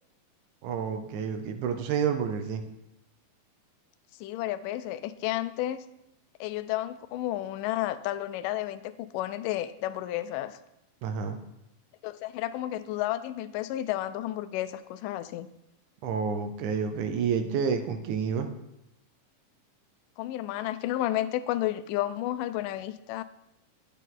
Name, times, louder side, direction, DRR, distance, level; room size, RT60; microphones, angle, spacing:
voice 1, 0.6-2.6 11.0-11.4 16.0-18.5, right 6 dB, 75° right, 7 dB, 1.9 m, -29 dB
voice 2, 4.2-5.9 6.4-10.6 12.0-15.5 20.2-23.2, left 14 dB, 80° left, 11 dB, 2.1 m, -32 dB
10.0 x 9.2 x 3.7 m, 0.87 s
omnidirectional pair, 3.9 m